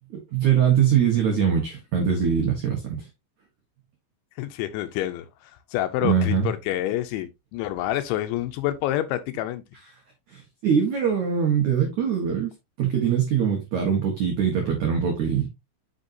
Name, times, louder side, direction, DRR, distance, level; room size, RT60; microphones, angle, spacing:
voice 1, 0.1-3.1 6.0-6.5 10.3-12.5 12.8-15.5, right 7 dB, 75° right, 1.7 m, -22 dB
voice 2, 4.4-9.6, left 13 dB, 80° left, 2.8 m, -28 dB
7.8 x 6.3 x 2.7 m
omnidirectional pair, 5.6 m